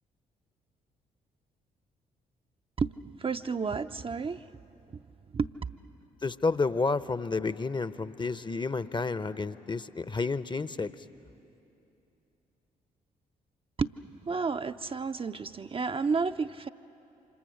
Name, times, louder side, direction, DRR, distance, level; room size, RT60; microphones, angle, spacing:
voice 1, 3.2-4.4 5.3-5.5 13.8-13.9 14.3-16.7, right 5 dB, 30° right, 8 dB, 0.6 m, -31 dB
voice 2, 6.2-10.9, left 4 dB, 25° left, 15 dB, 0.8 m, -30 dB
28.5 x 26.5 x 6.5 m, 2.9 s
figure-of-eight pair, 40°, 20 cm